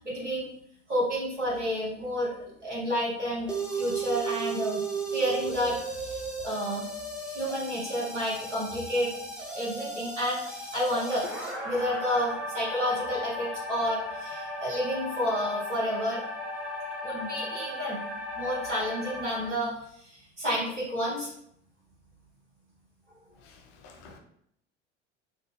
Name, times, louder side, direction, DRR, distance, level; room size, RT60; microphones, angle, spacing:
voice 1, 0.0-0.5 0.9-2.3 2.6-4.8 5.1-6.9 7.2-9.2 9.5-11.2 11.6-16.2 17.0-18.0 18.4-21.3, equal, 90° right, 1.2 m, -30 dB
sound 1, 3.5-19.5, right 1 dB, 5° right, 0.5 m, -36 dB
voice 2, 23.4-24.2, left 4 dB, 45° left, 0.6 m, -52 dB
3.2 x 2.0 x 3.2 m
figure-of-eight pair, 75°, 35 cm